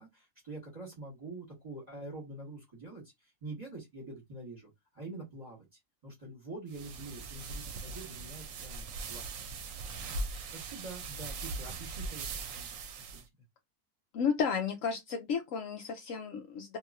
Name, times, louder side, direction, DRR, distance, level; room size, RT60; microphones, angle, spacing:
voice 1, 0.0-10.2 10.5-13.2, right 2 dB, 30° right, 1.3 m, -46 dB
sound 1, 6.7-13.2, right 3 dB, 70° right, 1.0 m, -40 dB
voice 2, 14.1-16.8, left 6 dB, 70° left, 0.9 m, -33 dB
2.9 x 2.7 x 2.5 m
omnidirectional pair, 1.5 m